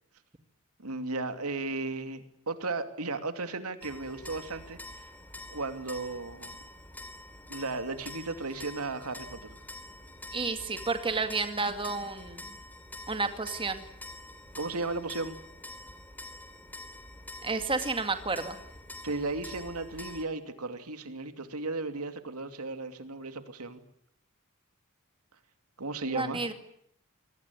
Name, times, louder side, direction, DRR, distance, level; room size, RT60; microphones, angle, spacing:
voice 1, 0.8-5.1 5.5-6.6 7.5-9.6 14.6-15.4 19.0-23.8 25.8-26.4, right 3 dB, 90° right, 8 dB, 2.6 m, -35 dB
sound 1, 3.8-20.2, left 1 dB, 10° left, 3.5 m, -46 dB
voice 2, 10.3-12.5 13.1-13.8 17.4-18.6 26.1-26.5, right 3 dB, 25° right, 7 dB, 2.1 m, -31 dB
26.0 x 20.0 x 9.6 m, 0.72 s
head